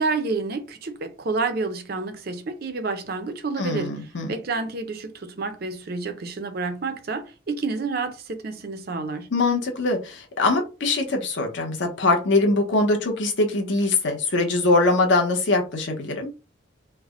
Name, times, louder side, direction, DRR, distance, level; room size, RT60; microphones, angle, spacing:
voice 1, 0.0-3.9 4.3-9.3, right 4 dB, 50° right, 0.5 m, -29 dB
voice 2, 3.6-4.3 9.3-16.3, left 2 dB, 60° left, 0.8 m, -22 dB
3.3 x 2.1 x 3.6 m
head